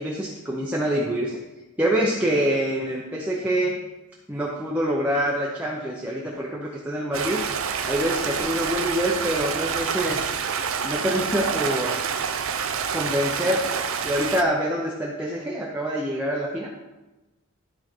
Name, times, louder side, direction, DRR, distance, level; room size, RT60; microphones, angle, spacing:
voice 1, 0.0-1.4 1.8-3.8 4.3-7.4 7.9-10.3 10.8-12.0 12.9-13.6 14.0-16.7, equal, 5° right, -4 dB, 0.8 m, -25 dB
Stream, 7.1-14.4, right 6 dB, 65° right, 0.6 m, -27 dB
13.0 x 4.6 x 4.5 m, 1.1 s
head